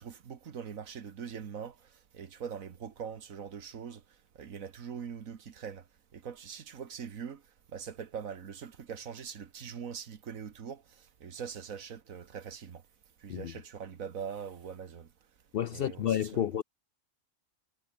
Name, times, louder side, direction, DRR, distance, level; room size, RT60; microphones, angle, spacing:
voice 1, 0.0-4.0 4.4-5.8 6.1-7.4 7.7-12.8 13.2-15.1 15.7-16.1 16.3-16.6, right 7 dB, 80° right, 1.8 m, -42 dB
voice 2, 15.5-16.6, left 10 dB, 65° left, 0.6 m, -30 dB
omnidirectional pair, 1.4 m